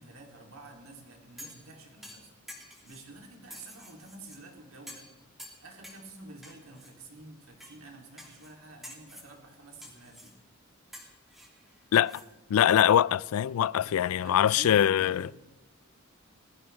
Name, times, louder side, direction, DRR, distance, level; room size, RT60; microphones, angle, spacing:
voice 1, 0.0-2.4 2.6-5.1 5.6-10.3 14.2-15.3, right 2 dB, 80° right, 2.9 m, -49 dB
sound 1, 1.4-1.7 2.0-3.0 3.5-4.4 4.9-5.1 5.4-6.0 6.4-6.9 7.6-7.8 8.2-8.5 8.8-9.3 9.8-10.3 10.9-12.3 12.6-12.7, equal, ahead, 2.6 m, -48 dB
voice 2, 12.5-15.3, left 10 dB, 90° left, 0.3 m, -23 dB
20.0 x 14.5 x 3.4 m
head